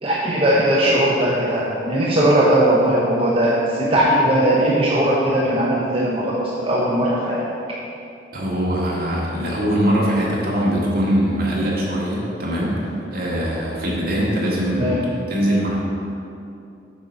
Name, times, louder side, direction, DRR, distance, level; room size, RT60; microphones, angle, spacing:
voice 1, 0.0-7.4 14.7-15.0, right 1 dB, 30° right, -7 dB, 0.8 m, -19 dB
voice 2, 8.3-15.8, equal, 55° right, -6 dB, 2.0 m, -22 dB
8.4 x 4.1 x 6.2 m, 2.6 s
head